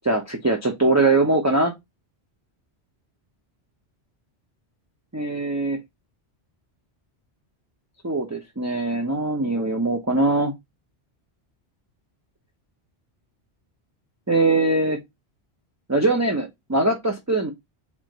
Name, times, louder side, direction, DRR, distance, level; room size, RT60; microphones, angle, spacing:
voice 1, 0.0-1.7 5.1-5.8 8.0-10.5 14.3-15.0 15.9-17.5, right 2 dB, 15° right, 0.7 m, -22 dB
4.6 x 3.6 x 2.9 m
omnidirectional pair, 1.1 m